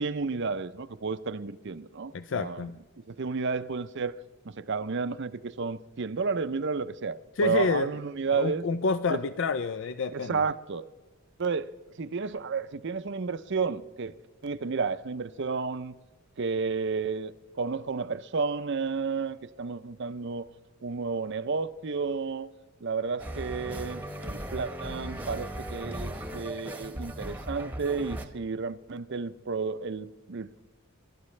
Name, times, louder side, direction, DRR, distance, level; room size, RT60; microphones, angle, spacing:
voice 1, 0.0-2.7 3.0-4.2 4.4-8.7 9.1-9.2 10.1-10.8 11.4-11.7 12.0-14.1 14.4-16.0 16.4-20.5 20.8-22.5 22.8-30.6, right 4 dB, 55° right, 0.6 m, -32 dB
voice 2, 2.1-2.7 7.4-7.9 8.3-10.4, left 4 dB, 60° left, 0.4 m, -28 dB
sound 1, 23.2-28.3, right 1 dB, 10° right, 1.1 m, -37 dB
28.0 x 12.5 x 3.2 m
head